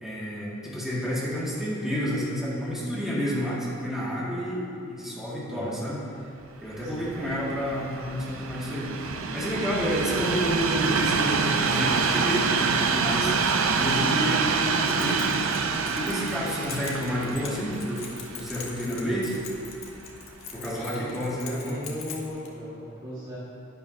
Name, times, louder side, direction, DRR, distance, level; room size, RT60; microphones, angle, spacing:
voice 1, 0.0-6.0 6.6-13.3 13.8-15.5 15.8-19.3 20.5-21.8, equal, ahead, -8 dB, 2.0 m, -30 dB
voice 2, 5.5-5.8 6.8-7.1 20.6-23.4, equal, 20° right, -9 dB, 1.8 m, -37 dB
Train, 6.7-19.9 20.6-20.7, right 5 dB, 80° right, 0.6 m, -27 dB
Keys jangling, 14.6-22.5, left 6 dB, 80° left, 1.2 m, -43 dB
11.0 x 11.0 x 2.7 m, 2.6 s
head